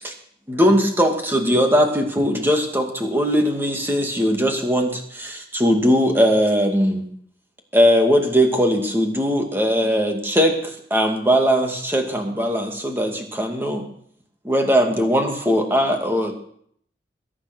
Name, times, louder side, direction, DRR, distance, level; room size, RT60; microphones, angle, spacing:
voice 1, 0.5-7.0 7.7-13.9 14.4-16.3, equal, 10° right, 3 dB, 2.3 m, -19 dB
21.5 x 9.8 x 6.2 m, 0.64 s
head